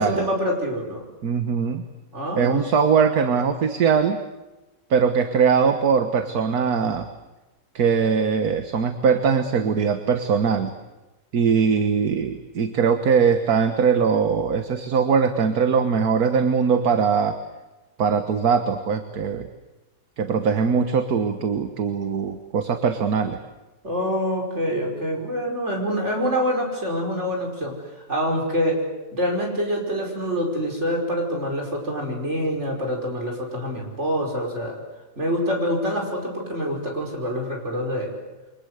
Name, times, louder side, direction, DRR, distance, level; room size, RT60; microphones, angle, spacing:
voice 1, 0.0-1.1 2.1-2.7 23.8-27.7 28.1-28.8 29.1-34.8 35.2-38.1, equal, 45° right, 1 dB, 5.8 m, -26 dB
voice 2, 1.2-1.8 2.4-4.2 4.9-7.1 7.8-10.7 11.3-17.4 18.0-19.5 20.2-23.4, right 6 dB, 70° right, 8 dB, 1.8 m, -21 dB
28.5 x 24.0 x 8.1 m, 1.1 s
omnidirectional pair, 1.7 m